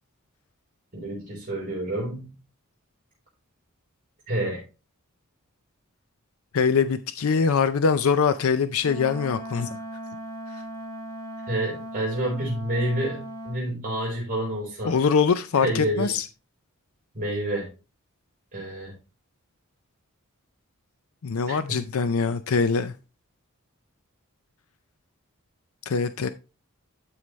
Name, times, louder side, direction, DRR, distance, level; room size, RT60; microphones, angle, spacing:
voice 1, 0.9-2.3 4.3-4.6 11.5-15.0 15.6-16.1 17.1-17.7 18.5-19.0 21.5-21.9, right 1 dB, 40° right, 4.3 m, -29 dB
voice 2, 6.5-9.8 14.8-16.3 21.2-22.9 25.9-26.3, left 5 dB, 75° left, 0.5 m, -23 dB
Wind instrument woodwind instrument, 8.8-13.6, equal, 15° left, 1.2 m, -38 dB
12.5 x 4.9 x 3.1 m
head